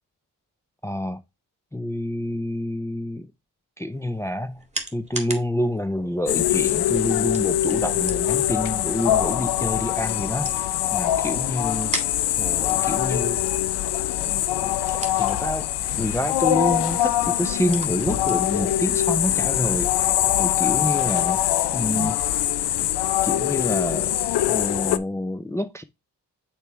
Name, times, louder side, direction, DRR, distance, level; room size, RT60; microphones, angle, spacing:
voice 1, 0.8-1.2 1.7-3.3 3.8-4.6 4.9-11.9 12.4-13.4 14.2-15.7 16.0-19.9 20.4-21.4 21.7-22.2 23.2-24.1 24.4-25.8, left 1 dB, 5° left, 0.5 m, -28 dB
sound 1, 3.9-20.3, right 2 dB, 15° right, 1.9 m, -40 dB
sound 2, 6.3-25.0, left 12 dB, 70° left, 0.6 m, -23 dB
6.5 x 4.7 x 3.1 m
supercardioid pair, 50°, 41 cm